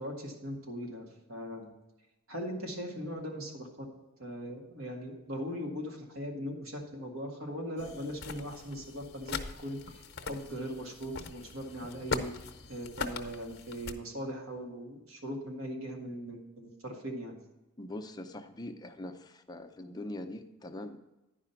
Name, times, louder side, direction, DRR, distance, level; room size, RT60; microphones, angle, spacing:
voice 1, 0.0-1.7 2.3-3.9 4.2-12.3 12.7-17.4, equal, 85° right, 1 dB, 2.0 m, -40 dB
sound 1, 7.8-13.9, left 4 dB, 55° left, 0.8 m, -41 dB
voice 2, 17.8-21.0, left 1 dB, 20° left, 6 dB, 0.6 m, -42 dB
10.5 x 5.0 x 5.7 m, 1.0 s
head